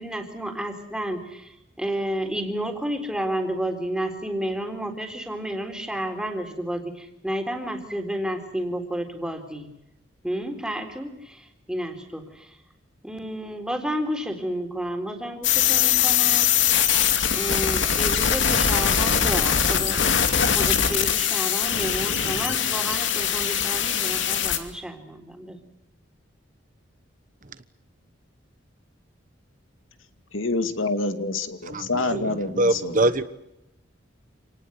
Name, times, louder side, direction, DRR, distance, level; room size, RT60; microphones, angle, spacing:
voice 1, 0.0-9.7 10.2-12.6 13.0-16.5 17.3-20.1 20.5-25.6, right 1 dB, 5° right, 3.7 m, -31 dB
sound 1, 15.4-24.6, left 8 dB, 70° left, 2.7 m, -22 dB
voice 2, 30.3-33.1, left 2 dB, 85° left, 2.3 m, -27 dB
voice 3, 31.7-33.2, right 2 dB, 40° right, 1.2 m, -24 dB
28.0 x 19.0 x 8.0 m
head